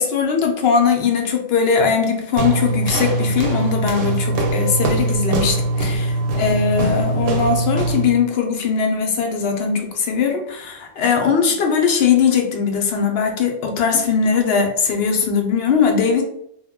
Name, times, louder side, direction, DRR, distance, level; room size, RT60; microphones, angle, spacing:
voice 1, 0.0-16.2, left 6 dB, 65° left, 2 dB, 0.7 m, -20 dB
sound 1, 2.4-8.2, right 2 dB, 60° right, 0.7 m, -21 dB
2.2 x 2.1 x 3.5 m, 0.74 s
omnidirectional pair, 1.3 m